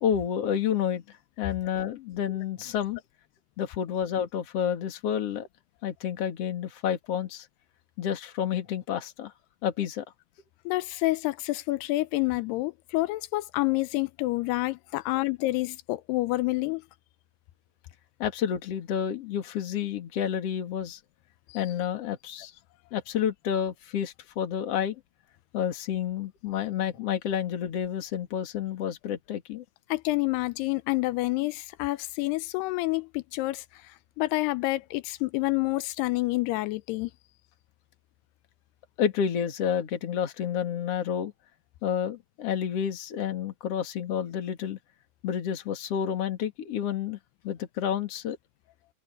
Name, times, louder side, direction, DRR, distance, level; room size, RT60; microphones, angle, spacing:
voice 1, 0.0-3.0 3.6-5.5 5.8-7.5 8.0-9.3 9.6-10.0 18.2-21.0 21.5-22.5 22.9-25.0 25.5-29.6 39.0-41.3 41.8-44.8 45.2-47.2 47.4-48.4, left 9 dB, 45° left, 2.7 m, -30 dB
voice 2, 10.7-16.8 29.9-33.6 34.2-37.1, left 20 dB, 80° left, 2.7 m, -28 dB
omnidirectional pair, 4.7 m